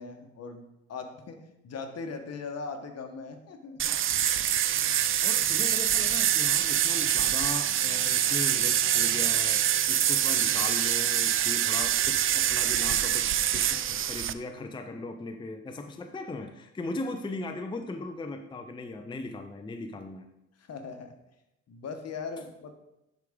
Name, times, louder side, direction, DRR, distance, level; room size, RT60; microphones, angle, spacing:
voice 1, 0.0-4.0 20.6-21.1 21.7-22.7, left 4 dB, 55° left, 6 dB, 1.2 m, -40 dB
sound 1, 3.8-14.3, right 10 dB, 45° right, 0.4 m, -25 dB
voice 2, 5.2-9.6 9.9-20.3, left 2 dB, 15° left, 6 dB, 0.5 m, -38 dB
10.0 x 4.9 x 3.6 m, 0.89 s
cardioid pair, 90°, 30 cm